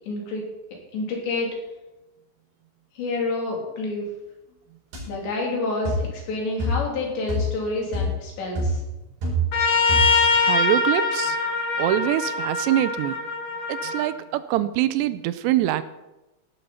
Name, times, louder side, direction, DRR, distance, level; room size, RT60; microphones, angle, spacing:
voice 1, 0.1-0.4 0.9-1.5 3.0-4.1 5.1-8.8, left 2 dB, 80° left, -1 dB, 5.7 m, -28 dB
sound 1, 4.9-5.1 5.8-6.1 6.6-6.9 7.3-7.6 7.9-8.2 8.6-9.6 9.9-10.3, equal, 55° right, 6.7 m, -26 dB
Trumpet, 9.5-14.1, left 4 dB, 45° left, 2.6 m, -23 dB
voice 2, 10.3-11.4 11.8-13.2 13.7-15.8, right 13 dB, 80° right, 13 dB, 2.8 m, -24 dB
16.5 x 12.5 x 4.3 m, 0.98 s
omnidirectional pair, 5.0 m